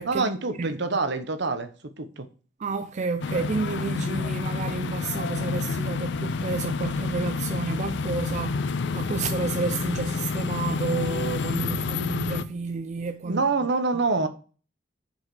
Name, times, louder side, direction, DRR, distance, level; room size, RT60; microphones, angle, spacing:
voice 1, 0.0-2.3 13.2-14.3, right 3 dB, 65° right, 1.0 m, -26 dB
voice 2, 2.6-13.4 13.9-14.0, right 4 dB, 40° right, 0.4 m, -31 dB
sound 1, 3.2-12.4, left 4 dB, 65° left, 0.5 m, -29 dB
6.5 x 4.9 x 4.8 m
head